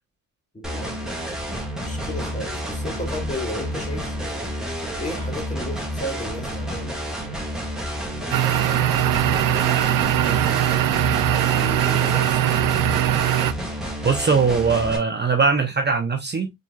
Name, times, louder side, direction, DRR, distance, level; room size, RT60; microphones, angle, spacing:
voice 1, 0.5-1.1 1.9-4.4 5.0-7.5 8.7-10.9 11.5-12.8, left 1 dB, 20° left, 1.7 m, -35 dB
sound 1, 0.6-15.0, equal, ahead, 1.7 m, -30 dB
sound 2, 8.3-13.5, right 12 dB, 75° right, 0.5 m, -21 dB
voice 2, 14.0-16.5, right 5 dB, 30° right, 0.8 m, -20 dB
4.3 x 3.9 x 2.3 m
cardioid pair, 85°, 34 cm